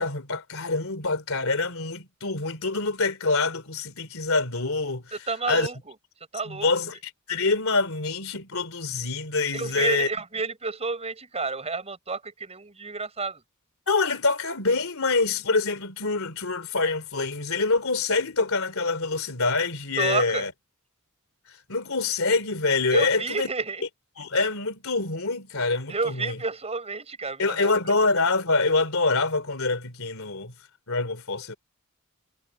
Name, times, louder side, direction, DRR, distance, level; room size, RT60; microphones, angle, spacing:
voice 1, 0.0-5.0 5.5-5.7 6.5-6.9 7.3-10.1 13.9-20.5 21.7-23.5 24.2-26.3 27.4-30.5 30.9-31.6, left 3 dB, 70° left, 3.6 m, -25 dB
voice 2, 5.1-5.9 6.3-6.9 9.5-13.4 20.0-20.5 22.9-23.8 25.9-27.7, right 4 dB, 30° right, 5.8 m, -30 dB
head